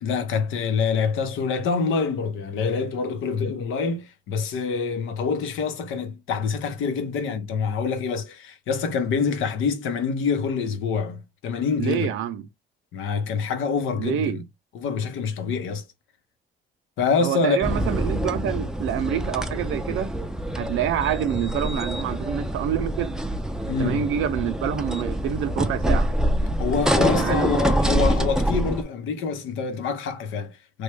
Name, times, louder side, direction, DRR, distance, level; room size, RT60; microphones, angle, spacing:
voice 1, 0.0-12.1 12.9-14.4 14.7-15.8 17.0-17.6 23.7-24.1 26.6-30.8, left 5 dB, 85° left, 0.7 m, -26 dB
voice 2, 11.8-12.5 14.0-14.4 17.2-20.1 20.6-23.1 23.8-26.1 27.1-27.6, right 10 dB, 90° right, 0.5 m, -27 dB
sound 1, 17.6-28.8, right 1 dB, 5° right, 0.4 m, -25 dB
3.1 x 2.2 x 3.3 m
cardioid pair, 90°, 20 cm